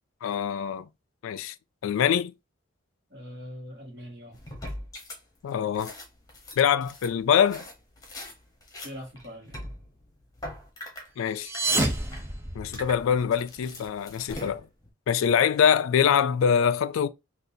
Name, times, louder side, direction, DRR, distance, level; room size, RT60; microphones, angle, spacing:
voice 1, 0.2-0.9 1.2-1.5 1.8-2.3 5.4-5.9 6.6-7.6 11.2-11.5 12.6-14.7 15.1-17.1, left 8 dB, 75° left, 0.3 m, -24 dB
voice 2, 3.1-4.4 8.8-9.7, equal, 55° right, 1.5 m, -42 dB
sound 1, 4.3-5.2 5.5-8.3 8.6-11.1 11.5-11.6 11.9-12.3 12.7-14.9, left 1 dB, 15° left, 0.9 m, -41 dB
sound 2, 11.3-13.2, right 2 dB, 10° right, 0.5 m, -29 dB
3.9 x 2.5 x 2.6 m
head